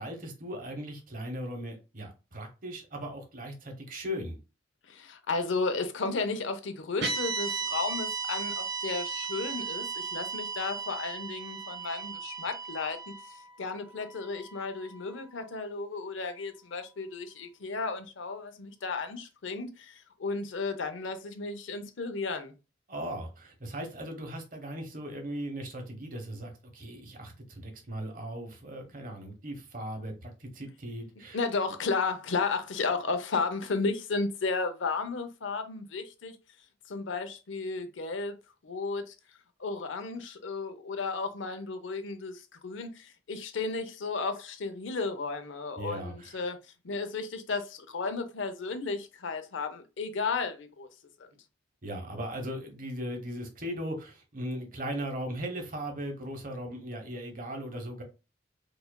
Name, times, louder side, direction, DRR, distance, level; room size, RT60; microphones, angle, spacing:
voice 1, 0.0-4.4 22.9-31.4 45.8-46.5 51.8-58.0, equal, 45° right, 0.9 m, -38 dB
voice 2, 4.9-22.5 31.3-36.4 36.9-38.4 38.6-39.1 39.6-46.6 46.8-50.9 51.2-51.3, left 4 dB, 80° left, 0.6 m, -33 dB
sound 1, 7.0-15.3, right 5 dB, 70° right, 1.4 m, -36 dB
4.7 x 2.5 x 2.2 m
head